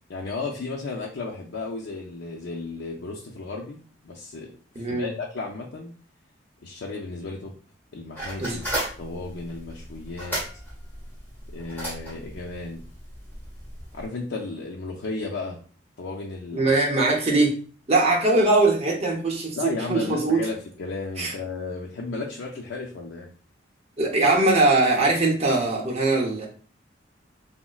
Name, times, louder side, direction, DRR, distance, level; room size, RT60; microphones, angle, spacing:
voice 1, 0.1-5.9 6.6-7.5 7.9-8.6 9.0-10.4 11.5-12.8 13.9-15.6 16.0-16.7 19.6-23.3, left 3 dB, 75° left, -1 dB, 0.5 m, -34 dB
voice 2, 4.7-5.1 8.4-8.6 16.5-17.6 17.9-20.5 21.2-21.3 24.0-26.5, right 2 dB, 35° right, -1 dB, 0.7 m, -21 dB
sound 1, 8.1-14.1, right 1 dB, 10° left, 1.4 m, -35 dB
4.1 x 2.1 x 2.3 m, 0.40 s
head